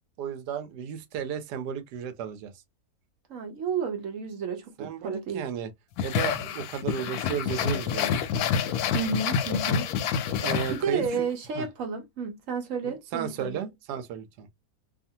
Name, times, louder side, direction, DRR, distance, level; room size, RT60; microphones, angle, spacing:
voice 1, 0.2-2.5 4.8-5.7 6.0-8.3 10.4-11.1 11.5-11.7 12.8-14.5, right 8 dB, 80° right, 1.2 m, -34 dB
voice 2, 3.3-5.4 8.9-9.9 10.7-13.6, right 5 dB, 65° right, 0.9 m, -31 dB
sound 1, 6.0-11.2, left 7 dB, 75° left, 1.0 m, -28 dB
2.7 x 2.5 x 2.7 m
omnidirectional pair, 1.8 m